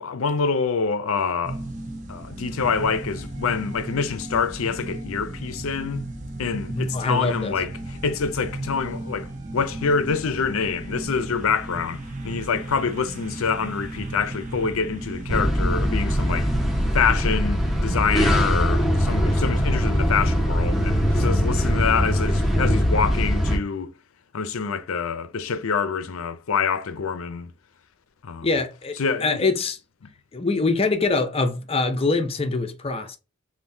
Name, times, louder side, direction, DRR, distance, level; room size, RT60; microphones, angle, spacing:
voice 1, 0.0-1.6 2.1-6.0 6.4-16.5 16.9-23.9 24.3-27.5 28.2-28.5 29.0-29.5 30.0-30.1, left 5 dB, 80° left, 0.5 m, -26 dB
sound 1, 1.4-17.0, right 2 dB, 35° right, 0.7 m, -35 dB
voice 2, 6.7-7.5 28.4-29.8 30.3-33.2, left 3 dB, 25° left, 0.6 m, -24 dB
sound 2, 15.3-23.6, equal, ahead, 1.1 m, -22 dB
3.5 x 2.6 x 2.7 m
head